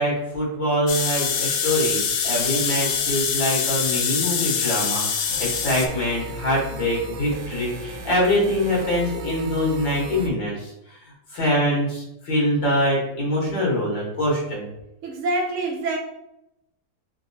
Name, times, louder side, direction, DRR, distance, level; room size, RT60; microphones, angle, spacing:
voice 1, 0.0-11.0 11.3-14.7, equal, 85° left, -4 dB, 2.3 m, -24 dB
sound 1, 0.9-5.9, left 6 dB, 70° left, 0.9 m, -24 dB
sound 2, 5.3-10.3, right 1 dB, 85° right, 0.7 m, -36 dB
voice 2, 15.0-16.0, right 2 dB, 55° right, -1 dB, 0.9 m, -25 dB
4.4 x 3.2 x 2.8 m, 0.86 s
omnidirectional pair, 2.0 m